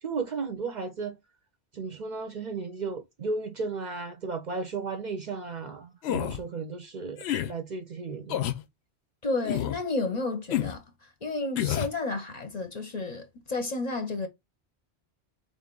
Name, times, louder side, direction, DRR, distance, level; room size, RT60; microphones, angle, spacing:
voice 1, 0.0-1.2 1.7-8.5, right 4 dB, 50° right, 0.6 m, -34 dB
sound 1, 6.0-6.4 7.2-7.5 8.3-8.6 9.5-9.8 10.5-10.8 11.6-12.0, left 12 dB, 80° left, 0.8 m, -29 dB
voice 2, 9.2-10.8 11.2-14.3, left 3 dB, 45° left, 0.7 m, -31 dB
3.8 x 2.5 x 3.7 m
omnidirectional pair, 1.1 m